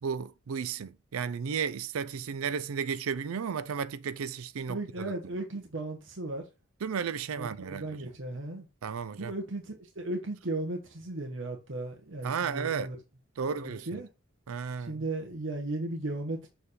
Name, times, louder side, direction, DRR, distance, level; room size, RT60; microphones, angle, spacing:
voice 1, 0.0-5.1 6.8-8.1 8.8-9.3 12.2-12.9 13.4-14.0 14.5-15.0, right 6 dB, 85° right, 0.4 m, -34 dB
voice 2, 4.7-6.4 7.3-8.7 9.2-13.0 13.4-14.1 14.8-16.5, right 2 dB, 60° right, 1.0 m, -36 dB
6.8 x 3.5 x 4.1 m
head